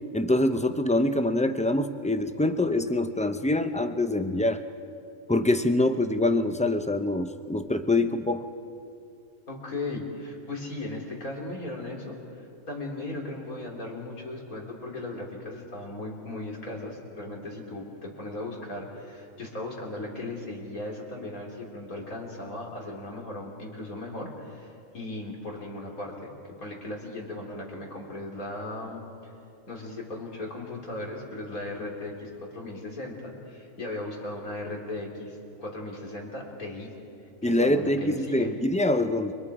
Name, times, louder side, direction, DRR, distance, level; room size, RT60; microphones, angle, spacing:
voice 1, 0.1-4.6 5.3-8.5 37.4-39.3, left 2 dB, 10° left, 8 dB, 0.3 m, -25 dB
voice 2, 9.5-29.0 29.7-36.9 37.4-38.5, left 2 dB, 80° left, -1 dB, 3.9 m, -37 dB
29.5 x 24.0 x 4.9 m, 2.6 s
omnidirectional pair, 1.5 m